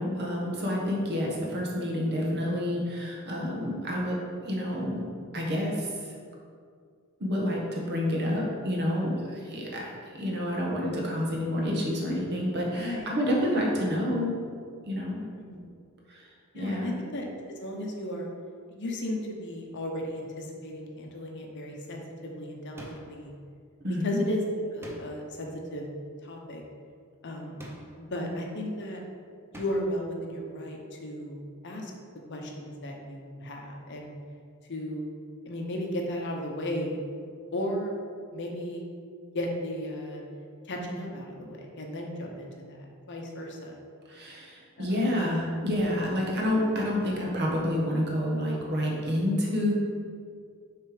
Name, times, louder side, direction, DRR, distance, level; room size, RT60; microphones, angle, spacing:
voice 1, 0.0-5.0 5.3-6.1 7.2-14.4 14.8-15.3 16.1-16.3 16.5-16.9 23.8-24.2 44.1-49.7, left 1 dB, 50° right, -2 dB, 1.2 m, -29 dB
voice 2, 12.7-13.0 15.4-15.6 16.5-18.3 18.7-23.3 24.0-24.4 24.7-25.9 26.2-26.6 27.2-27.6 28.0-29.0 29.5-31.9 32.3-34.1 34.7-35.0 35.5-37.0 37.5-37.9 38.3-38.8 39.3-40.2 40.6-43.8 44.8-44.9, left 1 dB, 55° left, 1 dB, 0.8 m, -35 dB
sound 1, 22.8-23.3 24.8-25.4 27.6-28.1 29.5-30.0, right 1 dB, 10° right, 0.6 m, -45 dB
6.5 x 3.3 x 5.0 m, 2.2 s
head